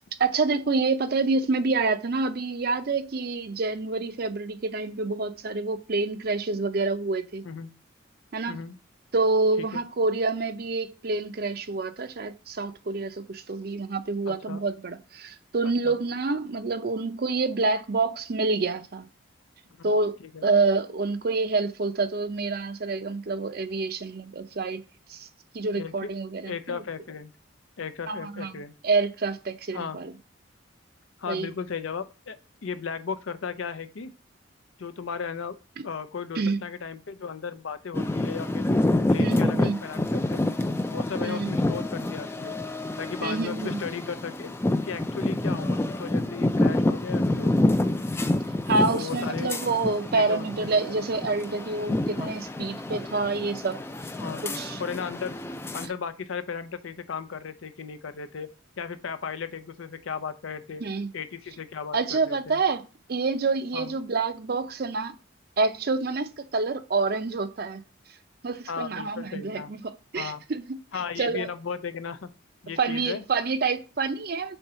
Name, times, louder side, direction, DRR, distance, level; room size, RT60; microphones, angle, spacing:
voice 1, 0.2-7.4 8.3-8.6 9.1-19.0 19.8-24.8 25.1-25.3 25.5-26.8 28.1-28.5 28.8-30.1 31.3-31.5 36.4-36.6 39.2-39.8 41.2-41.5 43.2-43.8 48.7-53.8 54.4-54.8 60.8-61.1 61.9-62.8 63.1-65.2 65.6-67.8 68.4-70.8 71.2-71.5 72.8-74.6, right 3 dB, 50° right, 0.5 m, -27 dB
voice 2, 14.3-14.6 15.8-16.0 19.8-19.9 20.2-20.4 25.7-26.1 26.5-27.3 27.8-28.7 29.7-30.0 31.2-32.4 32.6-34.1 34.8-35.6 35.8-38.7 39.1-40.4 40.9-42.6 43.0-44.5 44.9-47.9 48.9-49.6 50.1-51.0 52.2-52.3 54.2-54.4 54.8-55.3 55.7-58.5 58.8-60.8 61.1-62.6 63.7-63.9 68.7-69.7 70.1-70.4 70.9-72.3 72.6-73.2, left 6 dB, 80° left, 0.6 m, -35 dB
sound 1, 37.9-55.9, left 1 dB, 10° left, 0.3 m, -27 dB
4.5 x 3.8 x 5.6 m
head